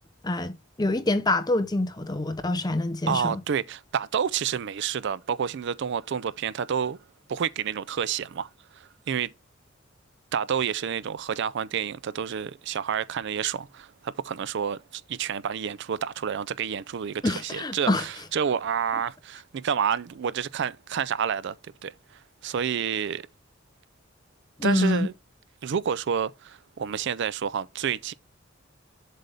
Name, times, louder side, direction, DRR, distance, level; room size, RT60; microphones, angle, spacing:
voice 1, 0.2-3.4 17.2-18.0 24.6-25.1, left 2 dB, 20° left, 0.7 m, -26 dB
voice 2, 3.1-7.0 7.3-9.3 10.3-21.6 21.8-23.3 24.6-25.1 25.6-28.1, right 7 dB, 60° right, 0.4 m, -29 dB
7.6 x 3.4 x 5.4 m
head